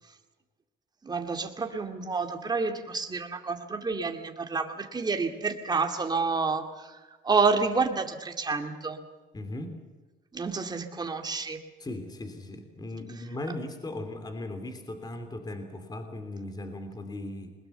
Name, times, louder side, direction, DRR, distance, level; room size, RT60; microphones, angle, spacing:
voice 1, 1.0-9.0 10.3-11.6, right 4 dB, 20° right, 5 dB, 2.3 m, -29 dB
voice 2, 9.3-9.8 11.8-17.5, left 1 dB, 20° left, 7 dB, 3.1 m, -38 dB
21.5 x 20.5 x 6.9 m, 1.3 s
cardioid pair, 115°, 18 cm